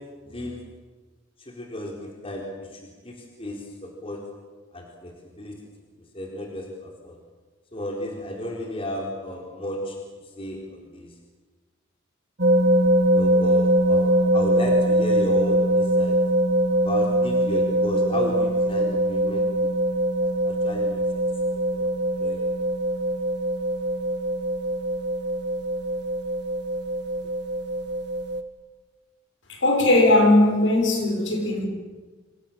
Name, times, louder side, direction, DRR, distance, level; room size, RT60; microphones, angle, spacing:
voice 1, 0.2-0.6 1.4-4.2 4.7-5.5 6.1-7.2 7.7-10.0 10.4-11.1 13.1-16.2 16.7-19.7 20.2-21.9 22.2-22.4, left 1 dB, 30° left, 0 dB, 4.2 m, -34 dB
sound 1, 12.4-28.4, right 1 dB, 55° right, 2.0 m, -22 dB
voice 2, 29.5-31.7, left 2 dB, 65° left, 2 dB, 6.9 m, -19 dB
27.5 x 27.5 x 7.6 m, 1.3 s
head